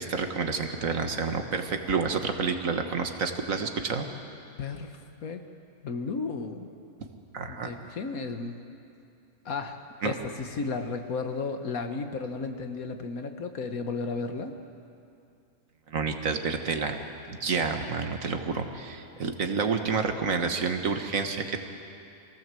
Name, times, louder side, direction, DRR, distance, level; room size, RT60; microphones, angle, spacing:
voice 1, 0.0-4.0 7.3-7.7 10.0-10.1 15.9-17.0 17.3-21.6, right 5 dB, 70° right, 5 dB, 1.8 m, -29 dB
voice 2, 4.6-5.5 5.8-6.7 7.5-8.6 9.4-14.5, left 4 dB, 75° left, 6 dB, 1.7 m, -34 dB
23.0 x 17.0 x 7.7 m, 2.6 s
omnidirectional pair, 1.5 m